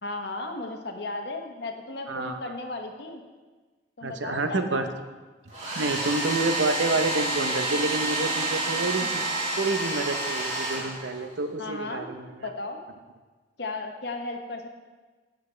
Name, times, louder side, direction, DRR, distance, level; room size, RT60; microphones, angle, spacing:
voice 1, 0.0-3.2 4.0-5.0 9.0-9.1 11.6-12.1 12.4-12.8 13.6-14.7, left 2 dB, 60° left, 4 dB, 1.0 m, -35 dB
voice 2, 2.1-2.5 4.0-4.9 5.8-9.2 9.6-12.5, right 3 dB, 80° right, 7 dB, 0.7 m, -28 dB
Domestic sounds home sounds, 5.5-11.4, right 2 dB, 35° right, 2.6 m, -29 dB
16.0 x 5.8 x 3.3 m, 1.3 s
head